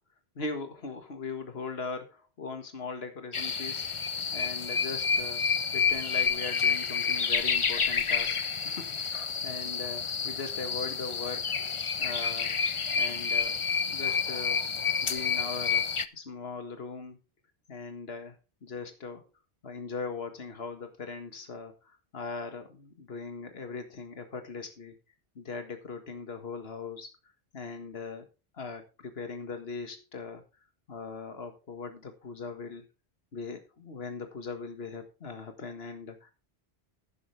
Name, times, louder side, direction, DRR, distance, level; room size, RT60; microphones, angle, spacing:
voice 1, 0.4-3.9 4.3-5.5 5.7-8.4 8.6-11.4 12.0-12.6 13.0-14.6 15.0-15.9 16.1-17.2 17.7-18.4 18.6-19.3 19.6-24.9 25.4-27.1 27.5-28.3 28.5-30.4 30.9-32.9 33.3-36.3, left 4 dB, 70° left, 7 dB, 1.9 m, -40 dB
sound 1, 3.3-16.1, left 6 dB, 35° left, 0.6 m, -29 dB
11.5 x 10.0 x 3.3 m, 0.31 s
omnidirectional pair, 1.1 m